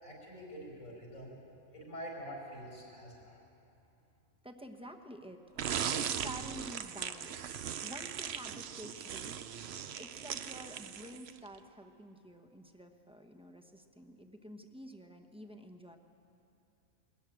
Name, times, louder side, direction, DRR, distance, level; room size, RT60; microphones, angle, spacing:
voice 1, 0.0-1.4 1.7-3.4, equal, 80° left, -2 dB, 5.3 m, -46 dB
voice 2, 4.4-7.3 7.8-9.3 10.0-16.0, equal, 5° right, 4 dB, 0.9 m, -50 dB
sound 1, 5.6-11.5, right 8 dB, 60° right, 0.9 m, -38 dB
21.5 x 14.0 x 9.1 m, 2.8 s
omnidirectional pair, 1.4 m